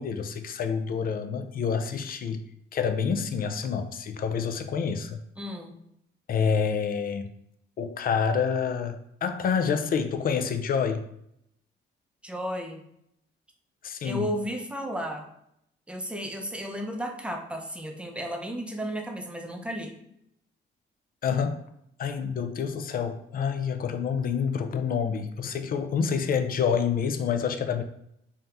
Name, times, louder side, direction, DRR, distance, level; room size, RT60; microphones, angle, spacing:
voice 1, 0.0-2.4 2.7-5.2 6.3-7.3 7.8-11.1 13.8-14.3 21.2-21.6 22.0-27.8, left 6 dB, 45° left, 9 dB, 0.5 m, -28 dB
voice 2, 5.4-5.8 12.2-12.8 14.0-15.3 15.9-19.9, equal, 5° right, 3 dB, 0.6 m, -33 dB
3.5 x 2.8 x 3.4 m, 0.75 s
cardioid pair, 90°, 20 cm